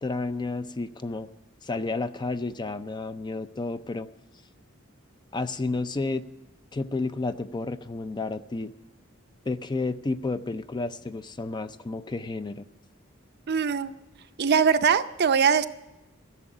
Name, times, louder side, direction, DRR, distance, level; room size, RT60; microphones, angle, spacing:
voice 1, 0.0-1.3 1.6-4.1 5.3-6.2 6.7-8.7 9.5-12.7, left 3 dB, 20° left, 12 dB, 0.4 m, -31 dB
voice 2, 13.5-13.9 14.4-15.7, right 6 dB, 50° right, 11 dB, 0.6 m, -21 dB
15.0 x 6.9 x 9.9 m, 0.95 s
head